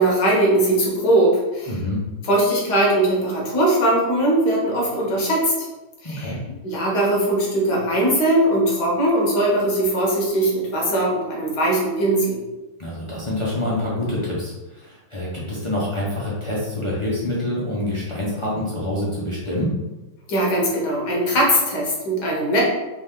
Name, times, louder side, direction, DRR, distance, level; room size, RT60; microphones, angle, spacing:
voice 1, 0.0-1.7 2.3-5.5 6.0-6.3 6.6-12.4 20.3-22.6, right 1 dB, 60° left, -3 dB, 1.7 m, -20 dB
voice 2, 1.7-2.0 6.0-6.4 12.8-19.8, left 1 dB, 25° left, -7 dB, 0.6 m, -26 dB
4.2 x 3.3 x 3.7 m, 1.1 s
omnidirectional pair, 2.1 m